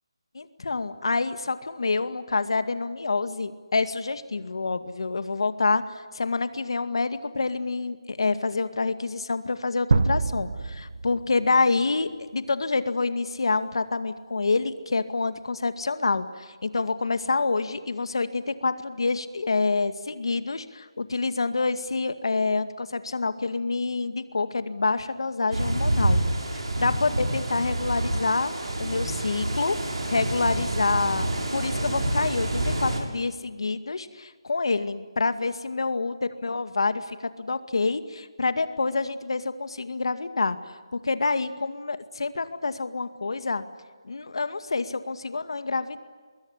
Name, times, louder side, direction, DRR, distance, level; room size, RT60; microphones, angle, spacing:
voice 1, 0.3-5.8 6.1-26.2 26.5-28.5 28.8-29.8 30.1-36.2 36.4-40.6 41.0-43.6 44.0-46.0, left 3 dB, 65° left, 10 dB, 2.1 m, -27 dB
sound 1, 9.9-11.9, right 3 dB, 55° right, 1.6 m, -26 dB
sound 2, 25.5-33.0, right 1 dB, 75° right, 7.7 m, -27 dB
25.0 x 22.0 x 9.9 m, 1.5 s
hypercardioid pair, 170°, 3 cm